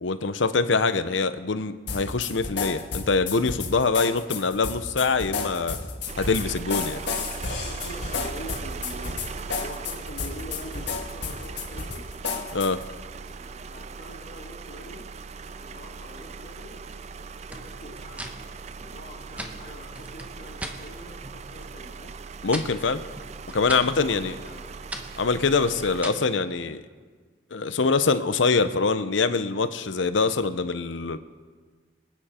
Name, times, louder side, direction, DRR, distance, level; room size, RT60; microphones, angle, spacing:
voice 1, 0.0-5.8 6.2-7.0 12.5-12.8 22.4-23.0 23.5-24.3 25.2-26.8 27.5-31.2, left 4 dB, 90° left, 12 dB, 0.8 m, -24 dB
sound 1, 1.9-12.9, left 4 dB, 70° left, 1.7 m, -32 dB
sound 2, 6.1-26.0, right 5 dB, 35° right, 0.4 m, -39 dB
voice 2, 7.4-9.2 9.6-12.1 13.2-15.0 15.6-16.8 17.3-18.3 18.8-22.1 23.7-24.7, left 1 dB, 50° left, -5 dB, 2.0 m, -44 dB
sound 3, 17.5-20.8 21.2-21.8 22.1-26.3, right 1 dB, 10° right, 1.0 m, -40 dB
25.5 x 9.1 x 4.4 m, 1.5 s
head